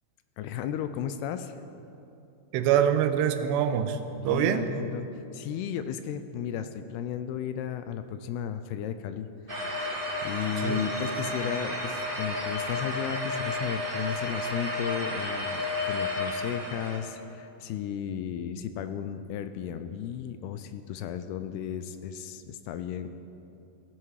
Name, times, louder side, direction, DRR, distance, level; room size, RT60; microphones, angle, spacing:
voice 1, 0.4-1.6 4.2-5.1 5.3-10.0 10.2-23.1, left 9 dB, 80° left, 10 dB, 2.5 m, -34 dB
voice 2, 2.5-5.0 10.6-10.9, right 9 dB, 85° right, 9 dB, 2.9 m, -25 dB
sound 1, 9.5-17.0, left 1 dB, 25° right, 1.2 m, -32 dB
18.0 x 13.5 x 4.8 m, 2.8 s
omnidirectional pair, 4.9 m